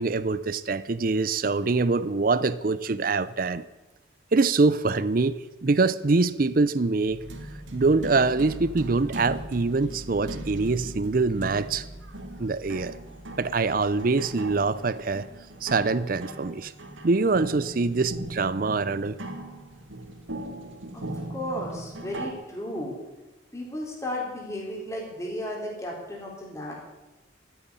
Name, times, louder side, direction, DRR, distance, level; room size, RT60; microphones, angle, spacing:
voice 1, 0.0-3.6 4.3-7.2 7.7-11.8 12.4-13.0 13.4-15.3 15.6-16.7 17.0-19.2, right 3 dB, 45° right, 16 dB, 0.5 m, -24 dB
sound 1, 7.1-22.3, right 1 dB, 90° right, 2.3 m, -39 dB
voice 2, 20.9-23.0 23.5-26.7, left 1 dB, 15° left, -2 dB, 3.6 m, -34 dB
13.0 x 9.2 x 9.8 m, 1.1 s
head